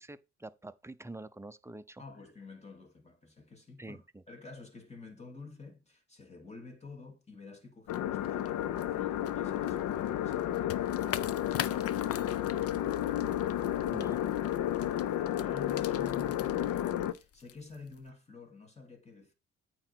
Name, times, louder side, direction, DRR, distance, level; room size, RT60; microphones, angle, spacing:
voice 1, 0.0-2.0 3.8-4.2 13.9-14.2, right 2 dB, 10° right, 0.6 m, -46 dB
voice 2, 2.0-12.8 14.9-19.3, left 4 dB, 20° left, 2.9 m, -50 dB
sound 1, 7.9-17.1, left 12 dB, 85° left, 0.8 m, -32 dB
sound 2, 7.9-18.1, left 10 dB, 50° left, 0.6 m, -44 dB
8.9 x 3.8 x 6.0 m
cardioid pair, 90°, 30 cm